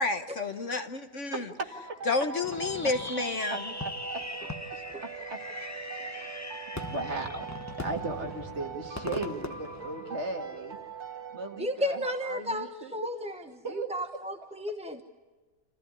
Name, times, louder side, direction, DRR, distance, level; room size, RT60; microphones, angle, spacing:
voice 1, 0.0-1.4 2.1-3.6, left 3 dB, 50° left, 8 dB, 1.4 m, -30 dB
sound 1, 1.7-12.1, right 5 dB, 65° right, 2.6 m, -42 dB
Fireworks, 2.4-10.6, left 2 dB, 10° left, 1.0 m, -40 dB
voice 2, 6.0-6.4 6.7-7.5 7.7-10.8 11.3-12.9 13.3-13.4 13.6-13.9, right 2 dB, 40° right, 4 dB, 2.3 m, -37 dB
voice 3, 11.6-13.4 13.9-15.0, equal, 5° right, 5 dB, 0.7 m, -33 dB
28.5 x 14.5 x 9.7 m, 1.3 s
omnidirectional pair, 1.8 m